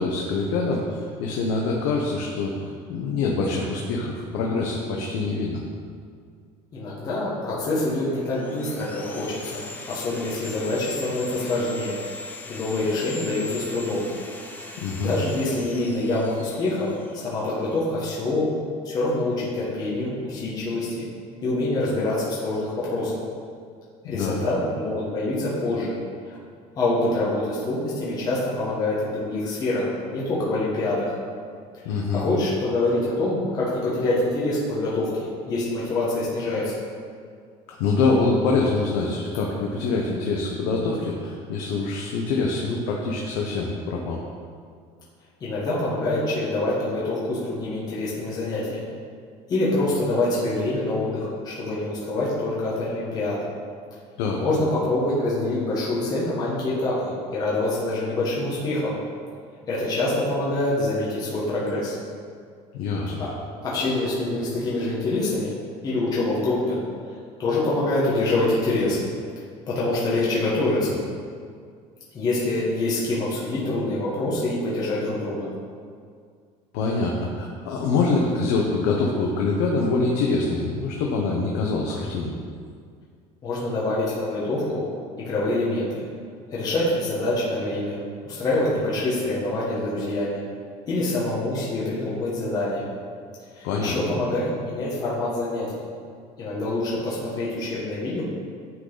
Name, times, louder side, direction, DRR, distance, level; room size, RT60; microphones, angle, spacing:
voice 1, 0.0-2.5 2.9-5.6 14.8-15.1 24.0-24.4 31.8-32.2 37.7-44.2 54.2-54.4 62.7-63.1 76.7-82.3 93.6-93.9, left 3 dB, 80° left, -1 dB, 0.8 m, -25 dB
voice 2, 6.7-12.0 12.5-14.1 14.8-16.9 17.1-18.5 18.8-21.0 21.4-23.2 24.0-26.0 26.3-26.4 26.7-31.1 31.9-36.8 45.4-48.9 49.5-53.4 54.4-59.0 59.7-62.0 63.2-63.3 63.6-65.5 65.8-66.8 67.4-69.0 69.7-71.0 72.1-75.5 83.4-84.9 85.2-86.0 86.5-88.0 88.3-90.4 90.9-92.9 93.5-95.8 96.4-98.2, left 2 dB, 30° left, -7 dB, 1.2 m, -25 dB
Sawing, 7.9-17.8, left 3 dB, 10° left, 0.5 m, -40 dB
9.6 x 3.9 x 3.9 m, 2.1 s
cardioid pair, 160°, 14 cm